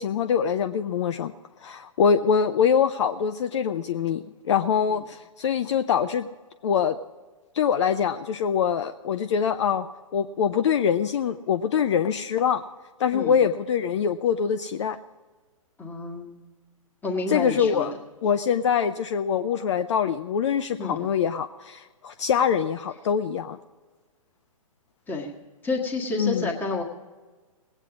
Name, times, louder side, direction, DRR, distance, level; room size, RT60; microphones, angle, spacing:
voice 1, 0.0-1.3 1.6-6.3 6.6-7.0 7.5-12.6 13.0-15.0 17.3-23.6 26.1-26.5, left 7 dB, 55° left, 11 dB, 0.6 m, -24 dB
voice 2, 15.8-16.4 17.0-17.9 20.8-21.0 25.1-25.3 25.6-26.8, left 3 dB, 10° left, -1 dB, 1.7 m, -29 dB
19.5 x 9.1 x 4.9 m, 1.3 s
figure-of-eight pair, 125°, 18 cm